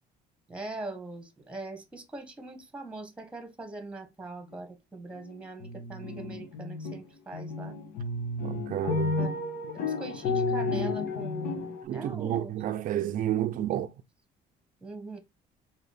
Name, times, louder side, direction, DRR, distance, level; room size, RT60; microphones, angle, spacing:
voice 1, 0.5-7.8 9.2-9.3 9.7-12.5 13.5-13.8 14.8-15.2, right 2 dB, 5° right, 1.0 m, -42 dB
sound 1, 5.1-5.4 5.6-7.0 7.3-11.8, left 3 dB, 85° left, 1.0 m, -32 dB
voice 2, 8.4-9.2 11.8-13.9, right 11 dB, 55° right, 0.4 m, -30 dB
3.9 x 2.8 x 3.3 m
cardioid pair, 110°, 17 cm